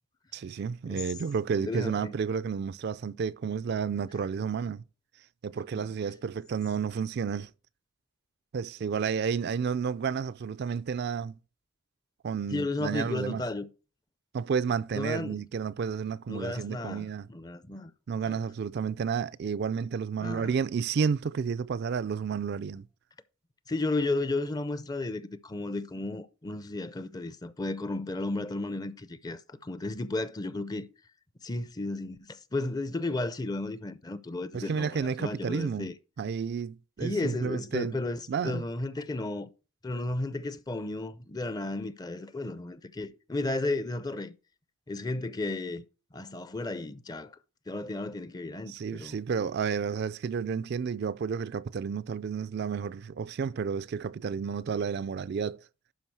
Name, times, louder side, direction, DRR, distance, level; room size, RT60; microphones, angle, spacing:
voice 1, 0.3-4.8 5.4-7.5 8.5-11.4 12.2-13.4 14.3-17.3 18.1-22.9 34.5-35.9 36.2-38.0 38.3-38.6 48.7-55.6, right 6 dB, 50° right, 0.3 m, -31 dB
voice 2, 1.6-2.1 5.7-5.9 12.5-13.7 14.9-15.4 16.3-17.9 18.3-18.4 20.2-20.6 23.7-30.9 31.4-35.9 37.0-39.5 39.8-44.3 44.9-45.8 46.1-47.4 47.7-49.2, left 2 dB, 20° left, 0.5 m, -33 dB
11.5 x 4.8 x 4.6 m
head